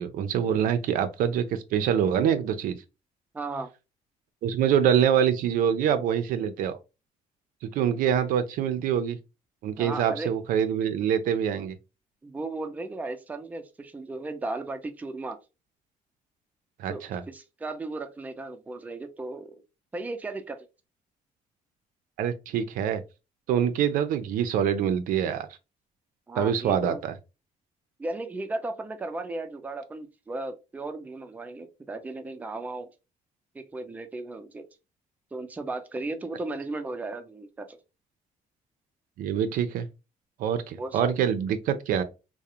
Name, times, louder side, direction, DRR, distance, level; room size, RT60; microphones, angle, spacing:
voice 1, 0.0-2.8 4.4-6.8 7.7-9.2 9.6-11.8 16.8-17.2 22.2-23.0 23.5-25.5 26.4-27.1 39.2-39.9 40.4-42.0, right 8 dB, 80° right, 0.4 m, -25 dB
voice 2, 3.3-3.7 9.8-10.3 12.2-15.4 16.9-19.6 19.9-20.7 26.3-27.0 28.0-32.9 33.5-34.7 35.3-37.8 40.8-41.1, right 2 dB, 10° right, 0.4 m, -35 dB
2.4 x 2.0 x 2.7 m
cardioid pair, 115°, 14 cm